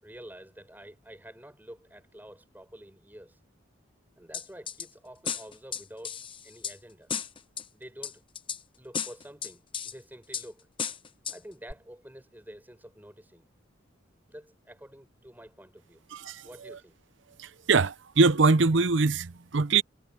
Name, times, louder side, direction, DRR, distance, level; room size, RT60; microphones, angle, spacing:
voice 1, 0.0-3.4 4.2-7.1 7.7-8.2 8.8-10.7 11.3-13.5 14.3-16.0 16.4-17.0, equal, 10° right, 6.6 m, -48 dB
sound 1, 4.3-4.9 5.2-6.7 7.1-7.6 8.0-8.6 8.9-9.9 10.3-10.5 10.8-11.4 11.7-11.8, left 7 dB, 25° left, 0.9 m, -34 dB
voice 2, 16.1-16.8 17.4-19.8, right 4 dB, 65° right, 0.7 m, -23 dB
head